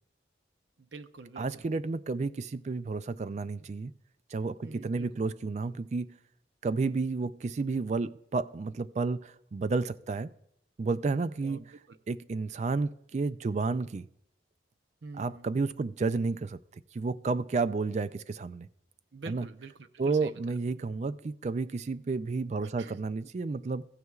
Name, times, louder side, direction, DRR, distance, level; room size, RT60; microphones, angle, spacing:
voice 1, 0.8-1.7 4.6-5.1 11.4-12.0 15.0-15.5 19.1-20.5 22.6-23.0, right 3 dB, 75° right, 0.6 m, -46 dB
voice 2, 1.4-3.9 4.3-6.1 6.6-10.3 10.8-11.6 12.1-14.1 15.2-16.6 16.9-18.7 19.3-19.5 20.0-23.9, right 4 dB, 40° right, 0.3 m, -31 dB
15.0 x 9.4 x 2.4 m
head